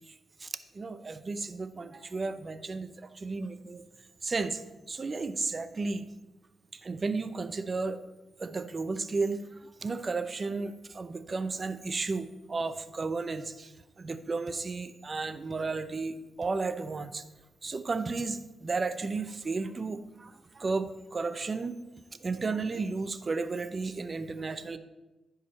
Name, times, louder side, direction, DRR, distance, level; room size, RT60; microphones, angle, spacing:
voice 1, 0.7-3.8 4.2-4.6 4.9-6.1 6.7-8.0 8.4-13.7 14.0-17.2 17.6-21.8 22.2-24.8, right 3 dB, 35° right, 11 dB, 0.5 m, -33 dB
11.0 x 5.0 x 4.2 m, 1.1 s
cardioid pair, 85°, 0 cm